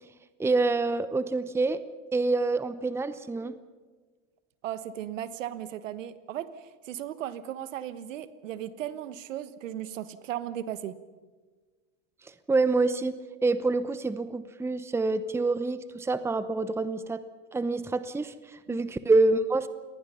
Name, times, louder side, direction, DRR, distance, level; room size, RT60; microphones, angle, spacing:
voice 1, 0.4-1.8 2.1-3.6 12.5-17.2 17.5-19.7, right 3 dB, 5° right, 13 dB, 0.8 m, -26 dB
voice 2, 4.6-11.0 18.7-18.8, right 11 dB, 85° right, 14 dB, 1.4 m, -36 dB
28.5 x 19.5 x 5.7 m, 1.4 s
hypercardioid pair, 110°, 37 cm